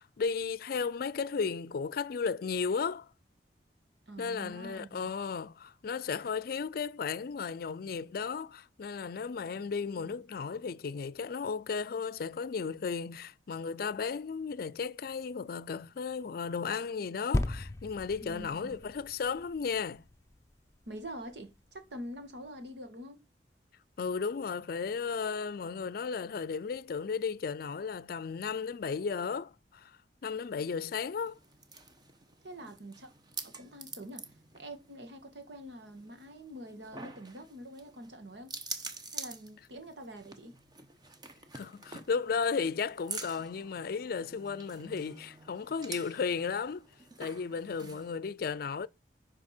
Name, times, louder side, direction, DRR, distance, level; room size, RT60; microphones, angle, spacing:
voice 1, 0.0-3.1 4.2-20.0 24.0-31.4 41.5-46.9 47.2-48.9, left 5 dB, 55° left, 0.4 m, -34 dB
voice 2, 4.1-5.1 9.9-10.1 18.2-18.8 20.8-23.2 32.4-33.1 33.4-34.3 34.5-38.5 39.1-40.6 47.8-48.0, right 1 dB, 80° right, 1.7 m, -46 dB
sound 1, 17.3-20.9 21.5-21.6, left 1 dB, 15° left, 0.6 m, -36 dB
sound 2, 31.2-48.2, right 3 dB, 25° right, 1.0 m, -47 dB
10.5 x 5.1 x 4.4 m
head